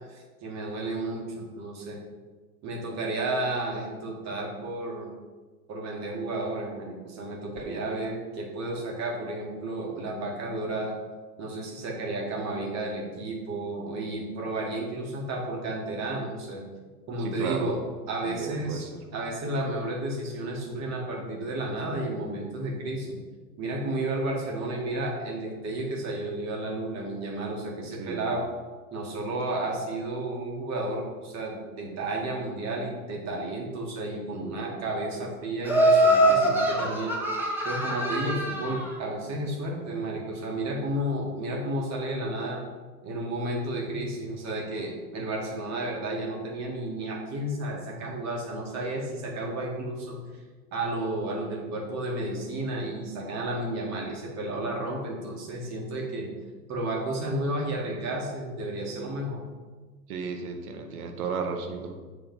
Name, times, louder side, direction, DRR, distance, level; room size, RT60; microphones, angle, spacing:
voice 1, 0.1-2.0 2.6-5.1 5.7-11.0 11.4-16.6 17.1-17.8 18.1-23.1 23.6-28.4 28.9-37.2 37.6-42.6 43.0-50.2 50.7-56.3 56.7-59.4, right 1 dB, 35° right, -1 dB, 1.8 m, -32 dB
voice 2, 17.2-17.7 18.2-18.9 28.0-28.3 60.1-62.0, right 5 dB, 65° right, 4 dB, 1.3 m, -34 dB
Laughter, 35.6-38.9, right 1 dB, 5° right, 1.4 m, -23 dB
7.4 x 3.8 x 5.4 m, 1.3 s
hypercardioid pair, 110°, 47 cm